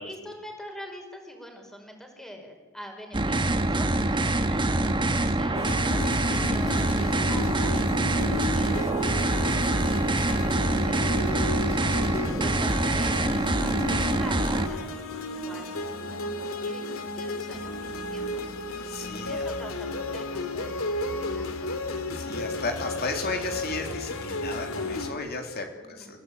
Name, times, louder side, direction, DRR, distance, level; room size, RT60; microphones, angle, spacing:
voice 1, 0.0-11.5 12.4-18.4 19.1-21.7 25.8-26.2, equal, ahead, 3 dB, 5.0 m, -44 dB
sound 1, 3.1-14.7, right 2 dB, 25° right, 1.4 m, -25 dB
sound 2, 5.5-25.1, left 2 dB, 85° left, 2.6 m, -34 dB
voice 2, 5.8-6.2 18.9-19.5 22.1-26.2, left 3 dB, 50° left, 3 dB, 3.3 m, -34 dB
29.0 x 17.0 x 9.0 m, 1.3 s
head